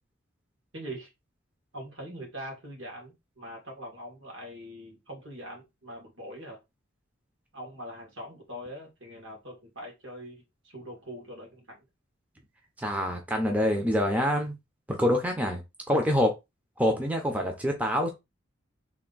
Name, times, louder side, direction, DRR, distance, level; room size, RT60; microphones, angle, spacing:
voice 1, 0.7-1.1 1.7-6.6 7.5-11.8, equal, 65° right, 1.9 m, -42 dB
voice 2, 12.8-14.6 15.0-15.6 15.9-16.3 16.8-18.1, equal, 5° right, 0.6 m, -25 dB
3.5 x 2.6 x 3.9 m
head